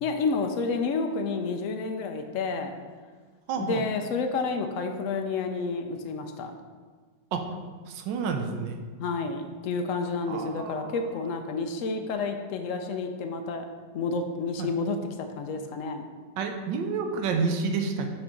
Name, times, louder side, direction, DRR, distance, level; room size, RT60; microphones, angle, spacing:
voice 1, 0.0-2.7 3.6-6.5 9.0-13.6 13.9-16.0, left 4 dB, 85° left, 5 dB, 0.7 m, -30 dB
voice 2, 3.5-3.8 7.3-7.6 7.9-8.8 10.3-10.9 14.6-14.7 16.4-18.1, right 5 dB, 80° right, 5 dB, 1.3 m, -29 dB
6.0 x 4.4 x 5.1 m, 1.5 s
omnidirectional pair, 2.0 m